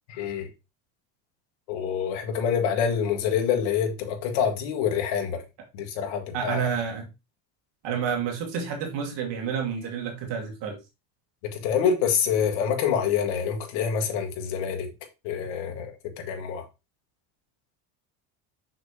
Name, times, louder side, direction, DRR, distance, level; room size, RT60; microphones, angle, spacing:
voice 1, 0.2-0.5 1.7-5.4 5.7-6.7 11.5-14.9 15.2-16.7, left 7 dB, 75° left, 2.0 m, -26 dB
voice 2, 6.3-7.1 7.8-10.8, right 7 dB, 60° right, 2.2 m, -29 dB
6.3 x 6.2 x 2.9 m
supercardioid pair, 95°, 48 cm